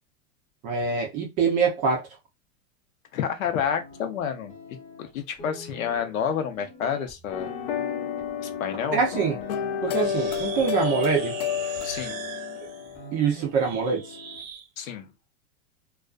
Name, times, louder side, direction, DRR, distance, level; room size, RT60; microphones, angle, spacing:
voice 1, 0.6-2.0 8.9-9.4 9.8-11.4 13.1-14.2, right 5 dB, 20° right, 0.4 m, -24 dB
voice 2, 3.1-7.5 8.4-9.0 11.8-12.2 14.8-15.1, left 7 dB, 85° left, 0.8 m, -29 dB
sound 1, 3.5-5.1 5.4-9.1 9.4-11.8 12.1-14.4, left 2 dB, 20° left, 0.9 m, -45 dB
sound 2, 7.3-13.3, left 8 dB, 50° left, 0.4 m, -30 dB
sound 3, 10.0-14.7, right 7 dB, 85° right, 0.8 m, -41 dB
2.4 x 2.3 x 2.3 m
supercardioid pair, 145°, 40 cm